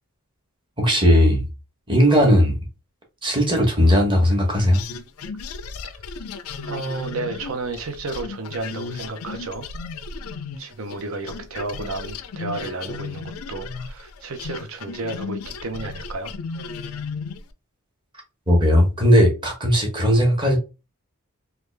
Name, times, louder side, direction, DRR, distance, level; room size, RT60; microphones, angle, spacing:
voice 1, 0.8-1.4 1.9-2.6 3.2-4.8 18.5-20.6, equal, 20° right, 1.0 m, -17 dB
sound 1, 4.7-11.0 11.3-17.5, left 4 dB, 85° left, 0.4 m, -34 dB
voice 2, 6.6-9.7 10.6-16.3, right 3 dB, 70° right, 0.7 m, -32 dB
3.4 x 2.3 x 3.2 m
head